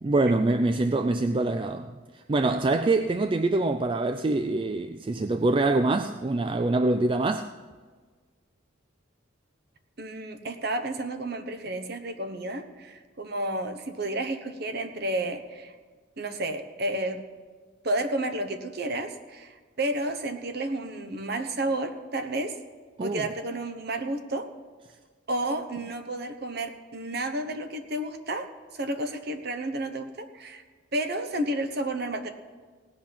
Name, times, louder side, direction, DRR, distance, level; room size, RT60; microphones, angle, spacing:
voice 1, 0.0-7.5 23.0-23.2, right 2 dB, 25° right, 0.3 m, -25 dB
voice 2, 10.0-15.7 16.2-17.2 17.8-22.6 23.0-24.5 25.3-30.6 30.9-32.3, right 1 dB, 50° right, 1.0 m, -31 dB
17.5 x 6.0 x 8.6 m
head